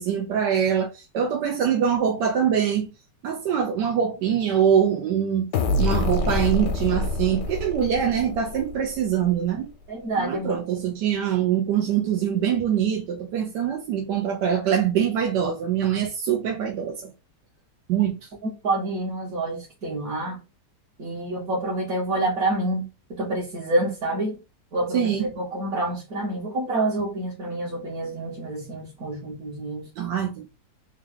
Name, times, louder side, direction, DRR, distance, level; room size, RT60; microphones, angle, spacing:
voice 1, 0.0-2.9 3.2-9.7 10.2-17.1 17.9-18.2 24.9-25.3 30.0-30.5, right 8 dB, 85° right, 1.3 m, -24 dB
sound 1, 5.5-9.2, left 2 dB, 80° left, 1.3 m, -26 dB
voice 2, 9.9-10.6 18.6-20.4 21.0-22.8 23.1-24.4 24.7-29.8, right 2 dB, 60° right, 1.5 m, -27 dB
3.7 x 2.3 x 3.4 m
omnidirectional pair, 1.8 m